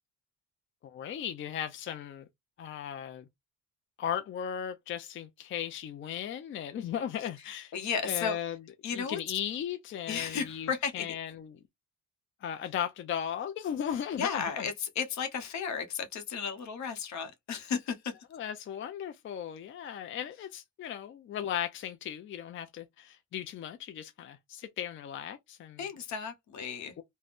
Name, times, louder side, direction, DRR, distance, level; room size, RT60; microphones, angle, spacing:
voice 1, 0.8-2.3 2.6-3.3 4.0-7.7 8.0-8.6 8.9-11.5 12.4-14.6 18.3-25.8, left 9 dB, 40° left, 0.4 m, -36 dB
voice 2, 7.7-8.4 8.8-9.2 10.1-11.1 14.2-18.1 25.8-27.0, left 6 dB, 65° left, 0.8 m, -34 dB
2.4 x 2.1 x 3.4 m
cardioid pair, 90°, 30 cm